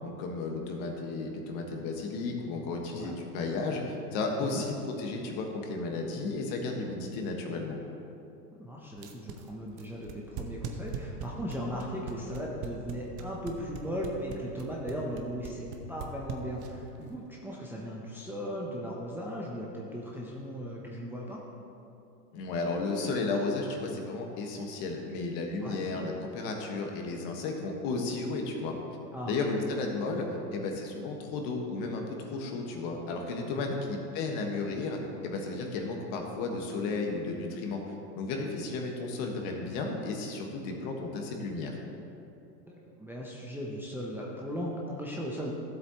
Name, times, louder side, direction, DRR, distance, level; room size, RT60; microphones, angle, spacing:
voice 1, 0.0-7.8 22.3-28.8 29.2-30.3 30.5-37.8 38.1-41.8, left 3 dB, 45° left, 2 dB, 1.6 m, -33 dB
voice 2, 8.5-21.4 25.6-25.8 29.1-29.3 33.6-33.8 42.6-45.5, equal, 5° right, -4 dB, 0.7 m, -37 dB
sound 1, 9.0-16.9, right 8 dB, 40° right, 0.9 m, -40 dB
13.0 x 7.9 x 3.0 m, 2.8 s
hypercardioid pair, 120°, 49 cm